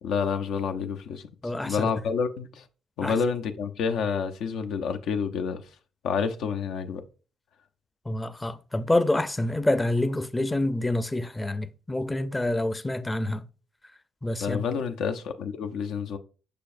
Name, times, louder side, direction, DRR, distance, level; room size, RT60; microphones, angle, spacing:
voice 1, 0.0-2.7 3.0-5.6 6.0-7.0 14.4-16.2, left 6 dB, 80° left, 0.6 m, -29 dB
voice 2, 1.4-1.9 3.0-3.1 8.1-13.4 14.2-14.6, left 1 dB, 15° left, 0.5 m, -27 dB
6.7 x 5.9 x 2.6 m
cardioid pair, 90°, 0 cm